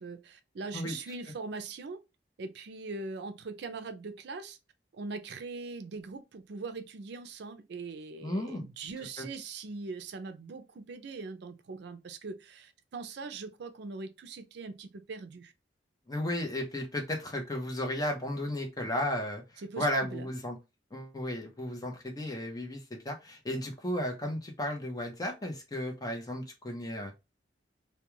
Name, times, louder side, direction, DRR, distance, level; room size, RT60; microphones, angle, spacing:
voice 1, 0.0-2.0 2.4-4.6 4.9-15.5 19.6-20.3, right 3 dB, 65° right, 0.4 m, -41 dB
voice 2, 8.2-8.6 9.2-9.3 16.1-20.6 20.9-27.1, left 1 dB, 20° left, 0.6 m, -34 dB
2.3 x 2.2 x 2.9 m
head